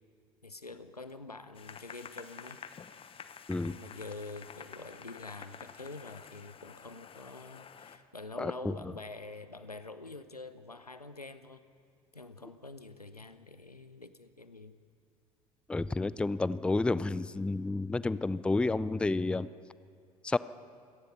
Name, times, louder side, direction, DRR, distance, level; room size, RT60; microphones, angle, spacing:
voice 1, 0.4-2.6 3.6-11.6 12.1-14.8, left 3 dB, 90° left, 12 dB, 0.8 m, -46 dB
sound 1, 1.5-8.0, left 7 dB, 30° left, 1.0 m, -49 dB
voice 2, 8.4-8.9 15.7-19.5 20.2-20.4, left 3 dB, 5° left, 18 dB, 0.4 m, -30 dB
26.0 x 18.0 x 5.7 m, 2.4 s
figure-of-eight pair, 65°, 19 cm